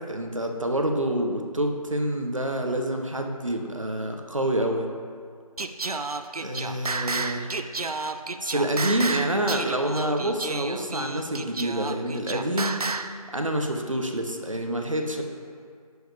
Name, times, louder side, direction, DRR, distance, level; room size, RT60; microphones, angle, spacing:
voice 1, 0.1-4.9 6.4-7.5 8.4-12.8 13.3-15.2, right 1 dB, 55° right, 4 dB, 0.8 m, -27 dB
Singing, 5.6-13.2, right 3 dB, 70° right, 0.5 m, -31 dB
9.7 x 6.3 x 3.4 m, 2.2 s
figure-of-eight pair, 175°, 20 cm